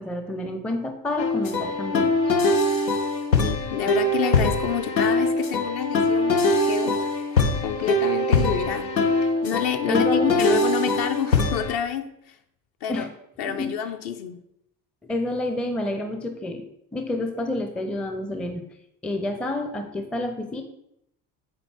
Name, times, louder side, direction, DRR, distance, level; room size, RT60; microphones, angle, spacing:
voice 1, 0.0-2.3 9.9-10.6 12.9-13.1 13.4-13.7 15.0-16.6 16.9-18.6 19.0-20.6, left 2 dB, ahead, 6 dB, 0.4 m, -29 dB
sound 1, 1.2-11.8, left 2 dB, 85° left, 0.6 m, -22 dB
voice 2, 3.4-7.3 7.6-8.9 9.4-12.3 12.8-13.0 13.4-14.4, left 8 dB, 50° left, 7 dB, 0.6 m, -29 dB
7.3 x 4.1 x 3.3 m, 0.78 s
figure-of-eight pair, 55°, 49 cm